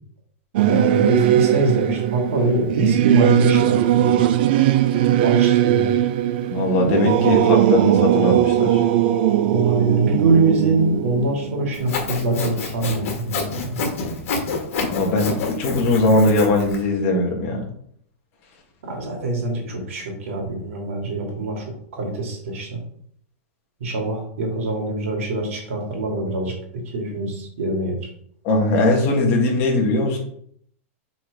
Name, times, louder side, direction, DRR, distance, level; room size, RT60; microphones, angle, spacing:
Singing / Musical instrument, 0.5-12.4, right 11 dB, 45° right, 0.4 m, -19 dB
voice 1, 0.7-4.2 5.2-5.9 9.5-13.8 18.8-22.7 23.8-26.5 26.9-27.9, right 2 dB, 70° right, 0 dB, 2.6 m, -23 dB
voice 2, 6.5-8.8 14.9-17.7 28.4-30.2, left 2 dB, 30° left, 0 dB, 1.6 m, -20 dB
Sawing, 11.7-16.8, left 4 dB, 70° left, 1.8 m, -28 dB
5.9 x 4.2 x 5.0 m, 0.66 s
supercardioid pair, 175°, 7 cm